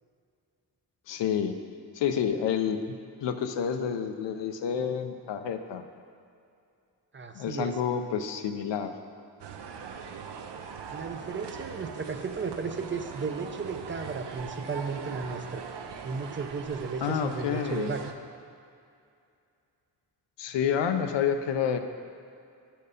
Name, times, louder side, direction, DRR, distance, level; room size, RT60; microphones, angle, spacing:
voice 1, 1.1-1.6 1.9-5.8 7.3-8.9 17.0-17.9 20.4-21.8, left 8 dB, 80° left, 8 dB, 0.6 m, -29 dB
voice 2, 7.1-7.7 10.9-15.6 16.0-18.0, right 4 dB, 30° right, 6 dB, 0.4 m, -34 dB
sound 1, 9.4-18.1, right 6 dB, 70° right, 0.6 m, -41 dB
8.4 x 4.5 x 5.0 m, 2.5 s
cardioid pair, 85°, 43 cm